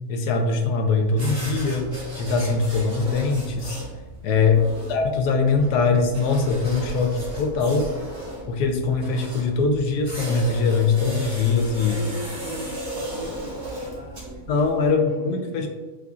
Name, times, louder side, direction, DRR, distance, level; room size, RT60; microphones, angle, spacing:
voice 1, 0.1-1.9 2.1-3.8 4.2-4.6 4.9-7.9 8.5-12.0 14.5-15.7, left 4 dB, 90° left, 4 dB, 1.2 m, -22 dB
sound 1, 1.1-14.9, right 1 dB, 40° right, 1.3 m, -36 dB
voice 2, 4.5-5.0 11.8-15.7, equal, 60° right, -13 dB, 2.0 m, -39 dB
6.5 x 2.5 x 2.4 m, 1.2 s
omnidirectional pair, 1.6 m